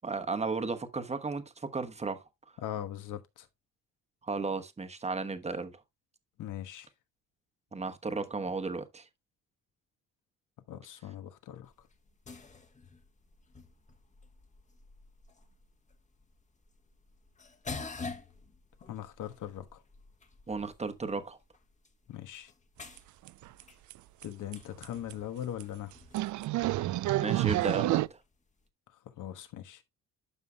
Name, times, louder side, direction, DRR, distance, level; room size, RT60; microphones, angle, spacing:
voice 1, 0.0-2.2 4.2-5.7 7.7-9.0 20.5-21.4 27.2-28.2, right 4 dB, 20° right, 1.1 m, -34 dB
voice 2, 2.6-3.5 6.4-6.9 10.7-11.7 18.9-19.8 22.1-22.5 24.2-25.9 29.2-29.8, left 11 dB, 65° left, 1.3 m, -40 dB
sound 1, 11.6-28.7, left 4 dB, 20° left, 1.1 m, -49 dB
sound 2, 23.0-23.1 23.3-23.6 23.9-24.0 24.2-24.3 24.5-24.6 24.8-25.1 25.6-25.7 26.1-28.1, right 16 dB, 60° right, 0.4 m, -29 dB
12.5 x 5.6 x 2.2 m
cardioid pair, 105°, 33 cm